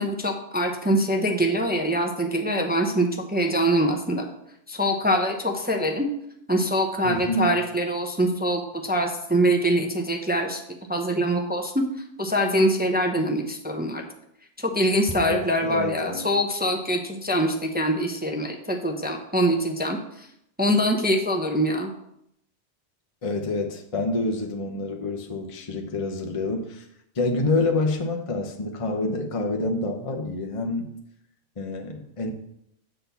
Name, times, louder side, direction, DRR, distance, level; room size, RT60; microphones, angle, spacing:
voice 1, 0.0-4.3 4.7-6.1 6.5-10.6 10.9-11.8 12.2-14.0 14.6-20.3 20.6-21.9, equal, 10° right, 3 dB, 0.6 m, -24 dB
voice 2, 7.0-7.6 15.2-16.3 23.2-26.9 27.1-30.9 31.6-32.3, left 2 dB, 30° left, 2 dB, 0.9 m, -27 dB
7.7 x 4.2 x 6.8 m, 0.76 s
omnidirectional pair, 1.3 m